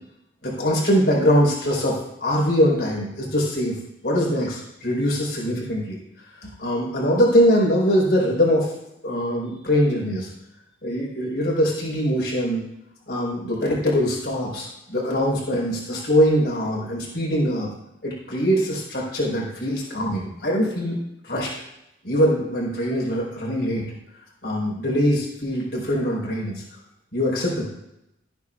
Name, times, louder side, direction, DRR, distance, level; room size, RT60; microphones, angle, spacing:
voice 1, 0.4-3.8 4.0-8.7 9.0-10.3 10.8-12.6 13.1-17.7 18.0-21.0 21.2-21.5 22.0-23.9 24.4-26.6 27.1-27.7, equal, 55° left, -4 dB, 4.6 m, -22 dB
18.0 x 9.2 x 2.5 m, 0.84 s
head